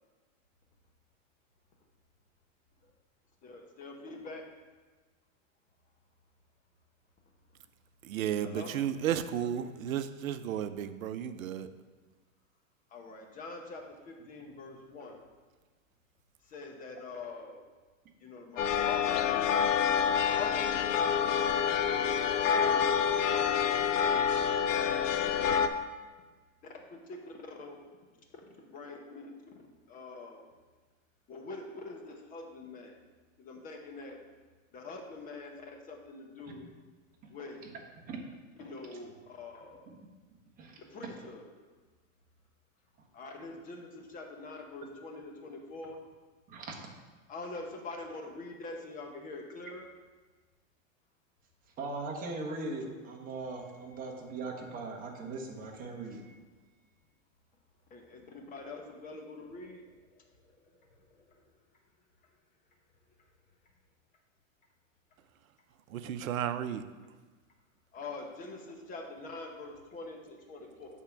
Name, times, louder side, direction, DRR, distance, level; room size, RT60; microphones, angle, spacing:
voice 1, 3.4-4.4 8.4-8.7 12.9-15.2 16.5-17.6 18.2-19.5 20.2-21.0 22.3-23.6 25.2-25.3 26.9-27.0 27.6-27.8 28.7-29.3 29.9-30.4 31.3-32.9 33.4-34.2 34.7-35.6 35.9-36.7 37.3-37.6 38.6-39.9 40.8-41.4 43.1-46.0 47.3-49.9 57.9-59.8 61.3-61.4 67.9-70.9, left 3 dB, 20° left, 2 dB, 0.9 m, -44 dB
voice 2, 8.0-11.7 65.9-66.8, right 10 dB, 90° right, 11 dB, 0.7 m, -33 dB
sound 1, 18.6-25.7, left 7 dB, 70° left, 0.7 m, -27 dB
voice 3, 51.8-56.2, right 3 dB, 20° right, 0 dB, 1.1 m, -40 dB
8.1 x 3.7 x 5.8 m, 1.3 s
hypercardioid pair, 140°, 40 cm